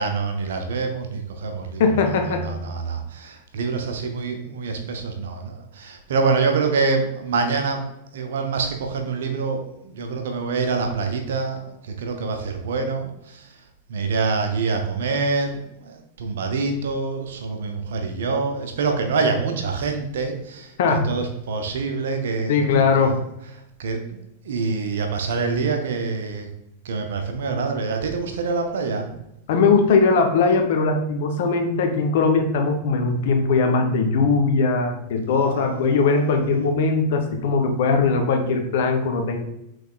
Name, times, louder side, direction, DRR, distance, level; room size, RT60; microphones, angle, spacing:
voice 1, 0.0-7.8 8.1-13.6 13.9-20.7 21.0-22.6 23.0-23.2 23.8-24.2 24.4-26.5 26.8-29.1 35.3-36.7, right 4 dB, 60° right, 5 dB, 0.5 m, -26 dB
voice 2, 1.8-2.5 20.8-21.1 22.5-23.2 29.5-39.4, left 4 dB, 55° left, 4 dB, 0.5 m, -20 dB
3.5 x 3.1 x 2.2 m, 0.83 s
figure-of-eight pair, 90°, 0 cm